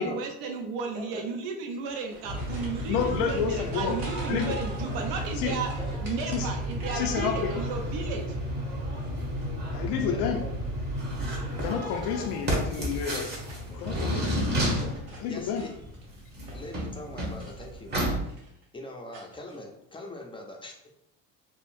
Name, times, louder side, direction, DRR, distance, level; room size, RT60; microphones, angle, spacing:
voice 1, 0.0-5.7 6.0-8.2, right 5 dB, 90° right, 3 dB, 0.6 m, -34 dB
sound 1, 1.7-7.7 8.0-8.6 10.0-10.4 11.4-14.5 14.8-16.8 17.3-17.9 18.2-18.6 19.1-19.6, right 1 dB, 45° right, 1.3 m, -49 dB
sound 2, 2.2-18.2, equal, 25° right, 1.0 m, -32 dB
voice 2, 2.9-4.0 4.3-4.6 5.4-5.6 6.3-6.5 6.9-7.5 9.7-10.4 11.6-13.3 13.7-14.4 15.2-15.6, left 7 dB, 85° left, 3 dB, 0.5 m, -30 dB
voice 3, 10.1-10.5 12.2-12.4 14.7-14.9 15.3-15.7 16.5-17.9 18.7-20.9, left 2 dB, 15° left, 1 dB, 0.4 m, -42 dB
3.6 x 2.0 x 2.5 m, 0.79 s
cardioid pair, 105°, 38 cm